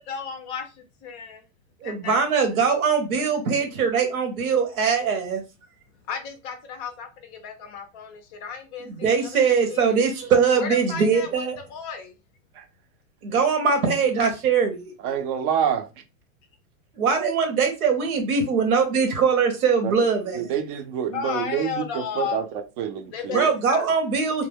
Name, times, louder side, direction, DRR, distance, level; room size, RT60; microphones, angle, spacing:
voice 1, 0.1-1.5 1.8-2.2 6.1-10.0 10.6-12.1 20.7-20.8 21.1-22.4 23.1-23.9, left 6 dB, 30° left, 0.4 m, -34 dB
voice 2, 1.8-5.4 8.9-11.6 13.2-14.9 17.0-20.5 23.3-24.5, right 5 dB, 85° right, 0.9 m, -22 dB
voice 3, 15.0-15.8 19.8-19.9 20.3-22.5 22.8-23.5, right 8 dB, 40° right, 0.5 m, -27 dB
2.2 x 2.1 x 3.3 m
hypercardioid pair, 120°, 42 cm